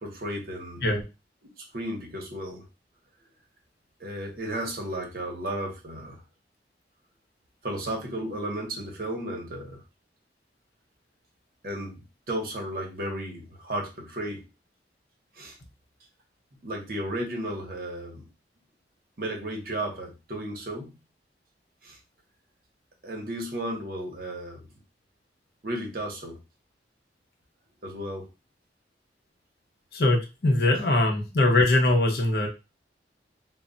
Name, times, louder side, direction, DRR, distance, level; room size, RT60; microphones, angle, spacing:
voice 1, 0.0-0.9 1.6-2.6 4.0-6.2 7.6-9.8 11.6-14.5 15.3-15.6 16.6-18.3 19.2-20.9 21.8-22.0 23.0-24.6 25.6-26.4 27.8-28.3, right 1 dB, 55° right, 1 dB, 0.8 m, -34 dB
voice 2, 29.9-32.5, left 2 dB, 60° left, 2 dB, 0.6 m, -22 dB
2.1 x 2.0 x 3.7 m, 0.28 s
head